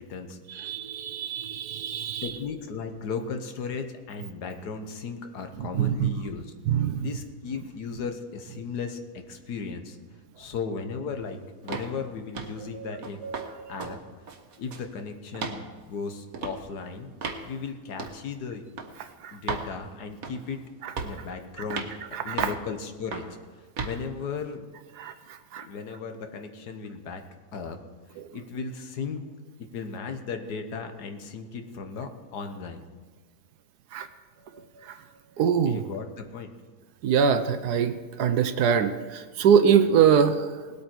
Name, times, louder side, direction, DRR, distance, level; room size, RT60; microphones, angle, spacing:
voice 1, 0.0-0.8 2.2-6.5 7.0-10.0 10.4-11.4 11.6-13.2 13.7-14.0 14.6-17.1 17.4-18.6 19.3-20.6 21.0-21.9 22.3-23.3 23.8-24.7 25.6-27.2 27.5-27.8 28.1-32.8 35.7-36.5, left 5 dB, 85° left, 6 dB, 1.7 m, -36 dB
voice 2, 0.5-2.3 5.7-6.1 6.7-7.1 12.7-14.0 19.2-19.4 20.8-20.9 21.7-21.8 22.1-22.5 25.0-25.7 28.2-28.3 33.9-34.1 34.8-34.9 35.4-35.8 37.0-40.5, right 7 dB, 80° right, 9 dB, 1.2 m, -24 dB
sound 1, 11.7-11.9 12.3-12.6 13.0-13.5 13.8-14.0 14.3-14.9 15.3-15.6 16.3-16.6 17.2-17.4 18.0-18.2 18.8-18.9 19.5-19.7 20.2-20.5 21.0-21.2 21.7-21.9 22.4-22.6 23.1-23.3 23.8-24.0, right 4 dB, 65° right, 1.5 m, -34 dB
19.0 x 8.5 x 4.5 m, 1.5 s
omnidirectional pair, 1.7 m